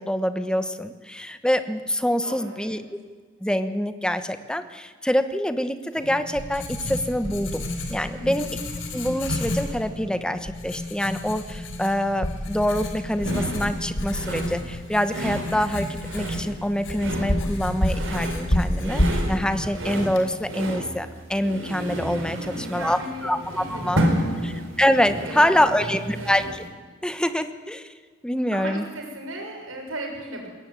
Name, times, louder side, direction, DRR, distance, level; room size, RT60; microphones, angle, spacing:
voice 1, 0.0-2.8 3.4-8.5 8.9-24.1 24.4-26.7 27.0-27.9 28.2-28.8, equal, 5° left, 10 dB, 1.1 m, -25 dB
voice 2, 2.2-2.8 8.1-8.5 22.4-24.5 25.2-26.5 28.5-30.5, right 1 dB, 90° right, 1 dB, 6.9 m, -37 dB
Writing, 6.0-20.8, left 1 dB, 65° left, 3.8 m, -30 dB
sound 1, 13.2-26.7, equal, 70° right, 4.2 m, -31 dB
21.0 x 17.5 x 9.5 m, 1.5 s
head